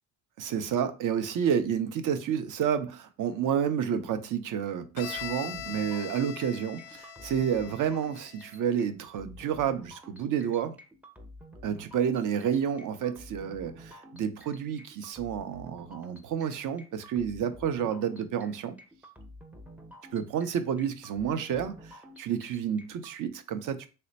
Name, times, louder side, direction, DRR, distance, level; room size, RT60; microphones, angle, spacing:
voice 1, 0.4-10.8 11.6-18.8 20.1-23.9, right 8 dB, 50° right, 0.6 m, -30 dB
Bowed string instrument, 5.0-8.7, left 9 dB, 80° left, 0.5 m, -42 dB
sound 1, 5.0-23.2, equal, 5° right, 0.5 m, -50 dB
3.2 x 2.0 x 4.0 m
supercardioid pair, 80°, 41 cm